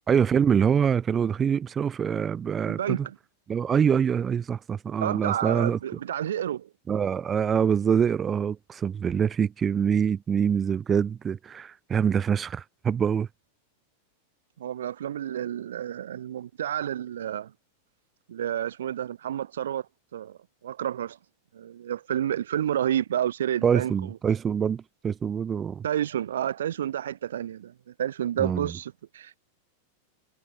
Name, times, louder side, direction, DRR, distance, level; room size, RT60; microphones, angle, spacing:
voice 1, 0.1-3.1 3.5-5.8 6.9-13.3 23.6-25.8 28.4-28.7, right 7 dB, 20° right, 1.8 m, -25 dB
voice 2, 2.7-3.2 5.0-6.7 14.6-17.5 18.3-19.9 20.1-20.4 20.6-21.2 21.5-23.9 25.8-27.7 28.0-29.4, right 10 dB, 60° right, 2.2 m, -30 dB
figure-of-eight pair, 90°, 0 cm